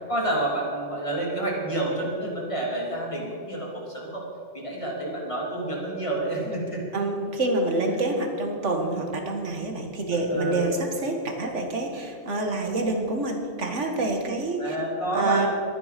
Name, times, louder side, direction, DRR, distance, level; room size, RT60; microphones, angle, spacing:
voice 1, 0.1-4.2 4.5-6.9 10.1-10.7 14.6-15.5, right 1 dB, 25° left, -3 dB, 3.2 m, -29 dB
voice 2, 6.9-14.8 15.1-15.5, right 2 dB, 90° right, 3 dB, 2.1 m, -27 dB
22.5 x 9.5 x 5.2 m, 2.4 s
omnidirectional pair, 1.2 m